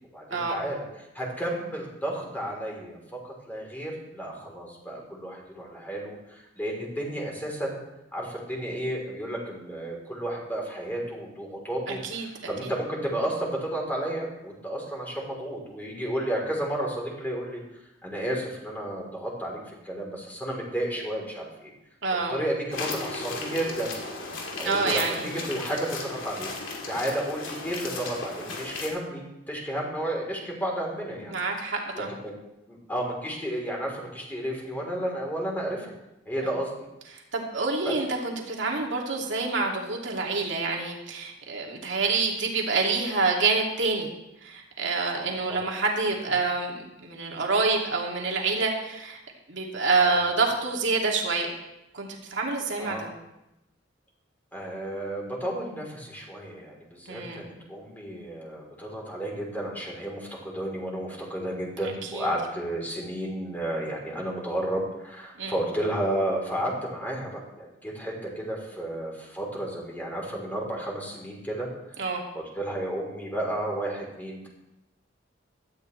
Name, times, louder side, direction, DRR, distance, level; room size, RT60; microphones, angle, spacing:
voice 1, 0.1-0.8 1.1-7.8 8.1-17.6 18.0-21.7 22.3-23.9 24.6-26.5 26.9-31.3 31.9-32.3 32.7-35.9 36.3-36.7 37.9-38.0 45.2-45.6 49.9-50.2 52.8-53.1 54.5-67.3 67.6-71.7 72.4-74.5, right 1 dB, 10° left, -2 dB, 3.6 m, -32 dB
voice 2, 11.9-12.2 12.6-12.7 22.0-22.4 24.6-25.3 31.3-32.1 36.4-36.5 37.1-44.1 44.4-49.2 49.5-51.5 51.9-53.1 57.1-57.5 62.1-62.3 65.4-65.5 72.0-72.2, right 3 dB, 70° right, -1 dB, 2.6 m, -27 dB
sound 1, 22.7-28.9, left 3 dB, 85° left, 2.5 m, -35 dB
16.5 x 12.5 x 3.3 m, 0.92 s
head